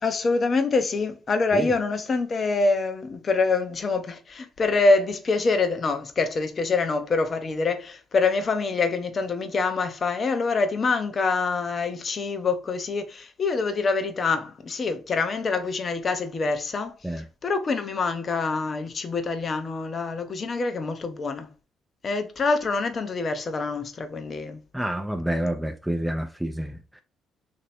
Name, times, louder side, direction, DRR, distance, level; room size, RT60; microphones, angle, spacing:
voice 1, 0.0-16.9 17.4-21.5 22.0-24.6, left 3 dB, 45° left, 0.7 m, -25 dB
voice 2, 24.7-27.0, right 1 dB, 5° right, 0.5 m, -28 dB
3.0 x 2.7 x 4.1 m
supercardioid pair, 60°, 0 cm